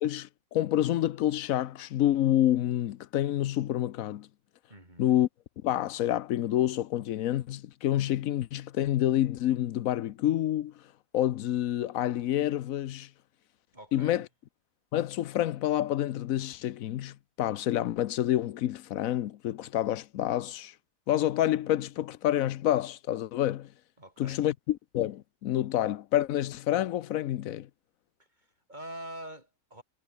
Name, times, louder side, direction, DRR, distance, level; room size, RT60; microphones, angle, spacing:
voice 1, 0.0-4.3 5.0-5.3 5.6-10.7 11.1-13.1 13.9-14.3 14.9-20.7 21.1-23.7 24.2-27.7, left 12 dB, 85° left, 1.1 m, -28 dB
voice 2, 4.7-5.1 13.7-14.3 24.0-24.4 28.2-29.8, right 1 dB, 35° right, 5.7 m, -45 dB
omnidirectional pair, 1.4 m